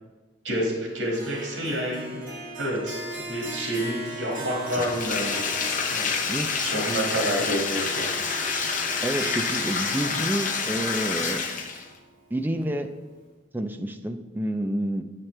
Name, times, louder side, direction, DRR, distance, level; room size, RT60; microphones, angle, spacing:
voice 1, 0.4-2.2 2.6-5.4 5.9-6.2 6.6-8.2, equal, 75° right, -2 dB, 1.9 m, -29 dB
Harp, 1.1-12.4, right 1 dB, 45° right, 1.7 m, -39 dB
Bathtub (filling or washing), 4.7-11.9, left 5 dB, 45° left, 0.7 m, -28 dB
voice 2, 9.0-11.4 12.3-12.9 13.5-15.0, right 1 dB, 10° right, 7 dB, 0.3 m, -29 dB
8.0 x 5.8 x 3.2 m, 1.2 s
head